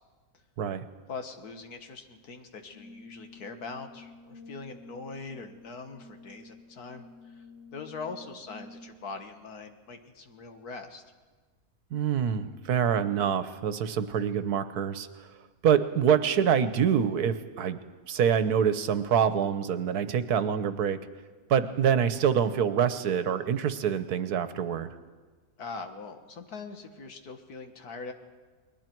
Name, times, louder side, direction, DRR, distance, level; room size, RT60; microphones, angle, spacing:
voice 1, 1.1-7.5 7.7-11.0 25.6-28.1, left 4 dB, 80° left, 6 dB, 2.0 m, -42 dB
Brass instrument, 2.7-9.1, left 2 dB, 45° left, 8.3 m, -50 dB
voice 2, 11.9-15.1 15.6-17.8 18.1-21.0 21.5-24.9, right 8 dB, 85° right, 11 dB, 1.5 m, -25 dB
29.5 x 21.0 x 4.6 m, 1.4 s
omnidirectional pair, 1.6 m